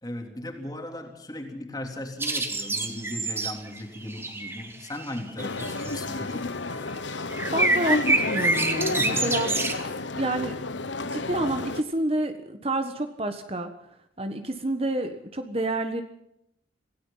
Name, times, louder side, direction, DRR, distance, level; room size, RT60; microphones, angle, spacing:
voice 1, 0.0-6.5 8.8-9.5 9.9-10.1, left 1 dB, 20° left, 4 dB, 3.3 m, -37 dB
sound 1, 2.2-6.0 7.3-9.7, right 2 dB, 15° right, 1.9 m, -27 dB
sound 2, 5.4-11.8, left 3 dB, 85° left, 1.3 m, -31 dB
voice 2, 7.5-9.6 10.2-10.6 11.0-13.7 14.2-16.0, right 2 dB, 30° right, 8 dB, 1.4 m, -29 dB
27.0 x 17.5 x 5.7 m, 0.76 s
head